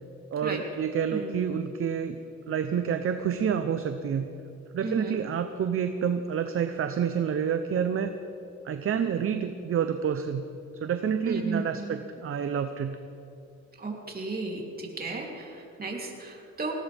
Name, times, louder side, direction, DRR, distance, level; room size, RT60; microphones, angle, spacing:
voice 1, 0.3-2.2 2.5-4.3 4.7-8.1 8.6-10.5 10.7-13.0, right 7 dB, 45° right, 8 dB, 0.8 m, -28 dB
voice 2, 4.8-5.1 11.2-12.0 13.8-16.7, right 3 dB, 30° right, -1 dB, 3.3 m, -34 dB
19.5 x 18.0 x 3.5 m, 2.7 s
cardioid pair, 90°, 30 cm